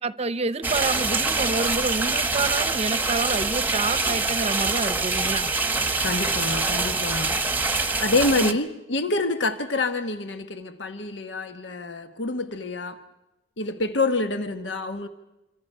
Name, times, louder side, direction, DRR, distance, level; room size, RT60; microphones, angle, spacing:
voice 1, 0.0-5.5 8.4-8.5, right 3 dB, 35° right, 0.7 m, -28 dB
sound 1, 0.6-8.5, right 3 dB, 10° right, 1.0 m, -25 dB
voice 2, 6.0-7.4 7.9-13.0 13.6-15.1, left 2 dB, 85° left, 1.1 m, -27 dB
27.0 x 25.5 x 5.5 m
head